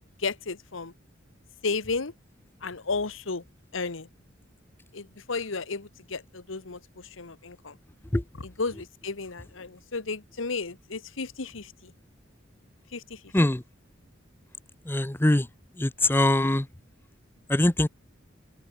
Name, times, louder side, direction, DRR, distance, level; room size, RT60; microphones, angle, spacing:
voice 1, 0.2-0.9 1.6-2.1 2.6-3.4 3.7-4.1 4.9-7.8 8.4-11.9 12.9-13.2, left 4 dB, 75° left, 1.3 m, -33 dB
voice 2, 14.9-15.5 15.8-16.7 17.5-17.9, left 1 dB, 10° left, 0.6 m, -22 dB
head